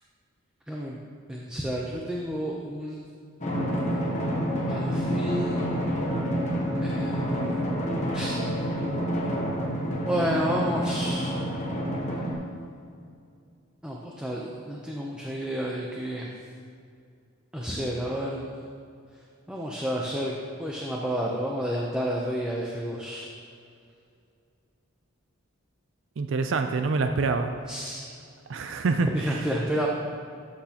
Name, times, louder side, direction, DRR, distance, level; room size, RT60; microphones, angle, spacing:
voice 1, 0.7-1.0 1.3-3.0 4.7-5.6 6.8-7.6 8.1-8.4 10.0-11.4 13.8-16.3 17.5-18.5 19.5-23.3 27.7-28.1 29.1-29.9, equal, 5° right, -3 dB, 0.6 m, -30 dB
Drum, 3.4-12.3, equal, 35° left, 1.2 m, -28 dB
voice 2, 26.2-27.5 28.5-29.5, right 4 dB, 60° right, 7 dB, 0.4 m, -26 dB
13.0 x 6.3 x 2.9 m, 2.4 s
head